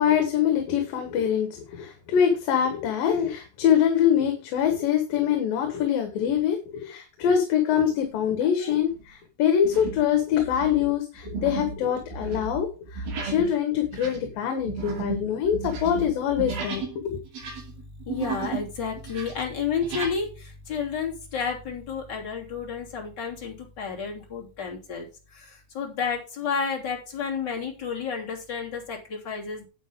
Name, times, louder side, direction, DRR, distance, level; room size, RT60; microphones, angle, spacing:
voice 1, 0.0-17.2, left 9 dB, 75° left, 5 dB, 3.0 m, -24 dB
sound 1, 7.9-8.3 8.8-9.0 9.6-10.1 10.4-17.0 17.3-18.7 19.0-20.2, right 4 dB, 75° right, 4.5 m, -34 dB
voice 2, 17.6-29.7, left 6 dB, 30° left, -1 dB, 3.3 m, -31 dB
10.0 x 8.5 x 3.6 m, 0.33 s
omnidirectional pair, 4.2 m